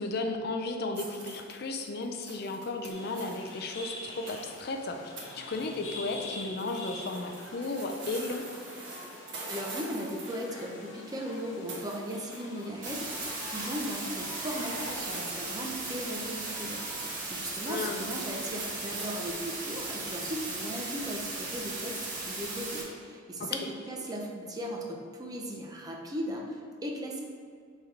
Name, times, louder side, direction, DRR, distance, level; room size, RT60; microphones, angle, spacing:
voice 1, 0.0-8.4 17.7-18.1 23.4-23.7, left 3 dB, 50° left, 4 dB, 0.4 m, -34 dB
sound 1, 0.9-3.5 4.3-4.6 5.2-5.3 5.5-6.1 6.4-11.4 11.7-13.6 13.9-20.8, right 3 dB, 60° right, 1.3 m, -44 dB
sound 2, 2.9-17.2, left 1 dB, 85° left, 1.2 m, -45 dB
voice 2, 9.5-23.6 23.9-27.2, equal, 20° right, 0 dB, 0.6 m, -37 dB
sound 3, 12.8-22.8, right 2 dB, 40° right, 1.2 m, -37 dB
6.5 x 3.5 x 4.5 m, 2.1 s
head